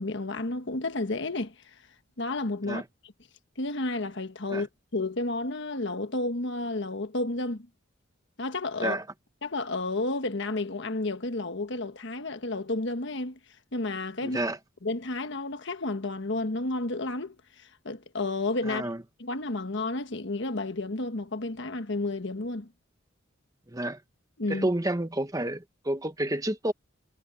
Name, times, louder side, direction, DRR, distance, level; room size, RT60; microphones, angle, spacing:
voice 1, 0.0-1.5 2.2-2.8 3.6-7.7 8.4-9.0 9.4-13.4 13.7-14.4 14.8-18.9 19.2-22.7 24.4-24.7, left 2 dB, 60° left, 1.4 m, -31 dB
voice 2, 14.2-14.6 18.7-19.0 23.7-24.0 24.5-26.7, right 1 dB, 20° right, 1.3 m, -30 dB
head